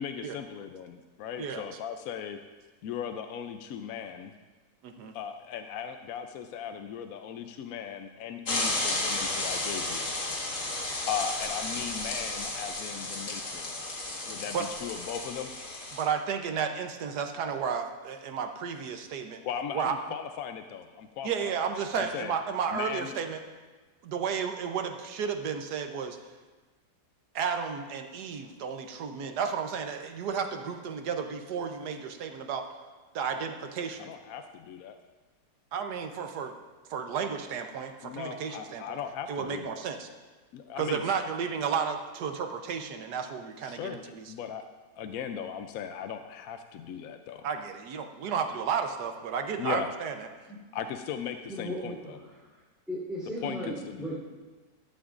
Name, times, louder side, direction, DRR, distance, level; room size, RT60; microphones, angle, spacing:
voice 1, 0.0-2.4 2.8-4.3 5.1-10.1 11.1-13.7 14.3-15.5 19.4-21.6 21.9-22.3 22.7-23.1 33.3-33.4 34.0-35.0 38.0-39.8 40.5-41.0 43.6-44.6 45.0-47.5 49.6-49.9 50.7-52.2 53.4-54.2, left 8 dB, 70° left, 7 dB, 0.9 m, -38 dB
sound 1, 8.5-16.0, left 2 dB, 45° left, 1.9 m, -33 dB
voice 2, 15.9-19.4 19.7-20.0 21.2-23.4 24.0-26.2 27.3-32.7 33.1-34.1 35.7-36.5 36.9-38.8 39.3-40.1 40.8-44.3 47.4-50.5, right 6 dB, 70° right, 6 dB, 1.3 m, -32 dB
voice 3, 51.5-52.6 52.9-54.2, equal, ahead, -7 dB, 3.5 m, -37 dB
14.0 x 12.5 x 2.5 m, 1.3 s
omnidirectional pair, 1.9 m